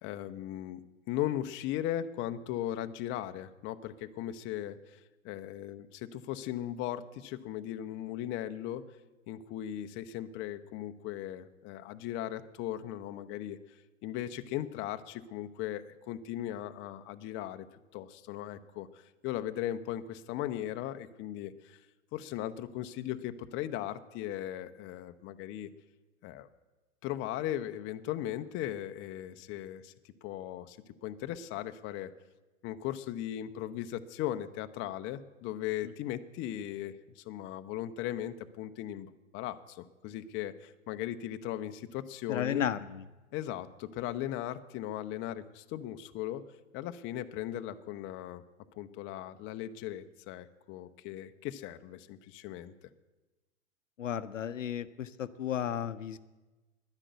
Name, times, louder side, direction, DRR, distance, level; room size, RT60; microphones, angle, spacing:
voice 1, 0.0-8.8 9.3-17.7 17.9-21.8 22.1-25.7 26.2-26.5 27.0-29.9 30.2-32.1 32.6-42.6 43.3-46.4 46.7-48.4 48.8-52.7, left 12 dB, 30° left, 9 dB, 0.7 m, -38 dB
voice 2, 42.3-43.0 54.0-56.2, left 9 dB, 85° left, 13 dB, 0.7 m, -33 dB
10.5 x 9.9 x 8.0 m, 1.1 s
hypercardioid pair, 105°, 37 cm